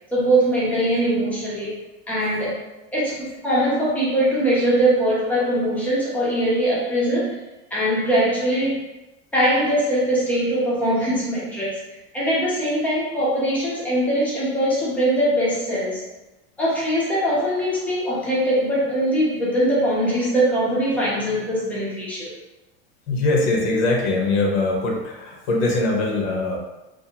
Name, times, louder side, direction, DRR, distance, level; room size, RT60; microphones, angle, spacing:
voice 1, 0.1-1.7 2.1-2.6 2.9-7.4 7.7-8.8 9.3-11.8 12.1-16.0 16.6-22.3, right 1 dB, 5° left, -8 dB, 0.3 m, -21 dB
voice 2, 23.1-26.6, left 2 dB, 80° left, 0 dB, 0.8 m, -22 dB
2.6 x 2.4 x 2.7 m, 1.0 s
supercardioid pair, 175°, 31 cm